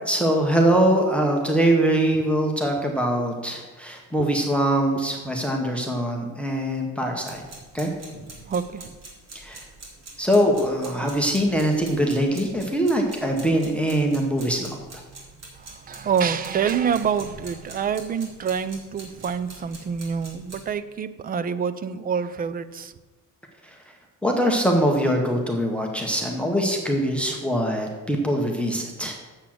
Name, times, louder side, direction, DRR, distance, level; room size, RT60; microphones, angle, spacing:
voice 1, 0.1-7.4 7.7-7.9 9.3-9.6 10.2-15.0 24.2-29.2, right 1 dB, 5° left, 1 dB, 0.9 m, -23 dB
sound 1, 7.3-20.7, right 2 dB, 50° right, 2.7 m, -44 dB
voice 2, 8.5-9.0 12.9-13.0 15.6-22.9, right 7 dB, 25° right, 13 dB, 0.4 m, -27 dB
7.2 x 6.9 x 7.6 m, 1.2 s
cardioid pair, 170°, 34 cm